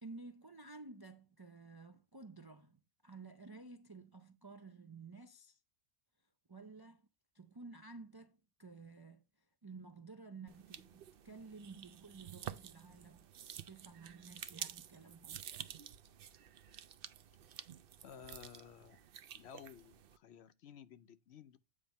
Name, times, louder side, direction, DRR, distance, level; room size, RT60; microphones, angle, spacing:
voice 1, 0.0-5.6 6.5-7.1 7.3-13.3 13.7-15.4, right 3 dB, 40° right, 0.3 m, -53 dB
sound 1, 10.5-20.2, right 10 dB, 60° right, 0.7 m, -50 dB
voice 2, 18.0-19.0 19.3-21.6, left 8 dB, 65° left, 0.8 m, -55 dB
8.7 x 3.4 x 5.3 m
omnidirectional pair, 1.3 m